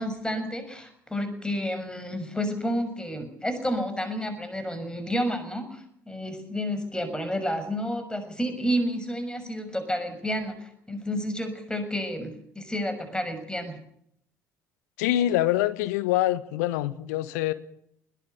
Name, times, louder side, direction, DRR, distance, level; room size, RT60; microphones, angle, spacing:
voice 1, 0.0-13.8, equal, 10° left, 6.4 m, -30 dB
voice 2, 15.0-17.5, left 14 dB, 70° left, 1.3 m, -25 dB
21.0 x 18.5 x 6.9 m
figure-of-eight pair, 55°, 9 cm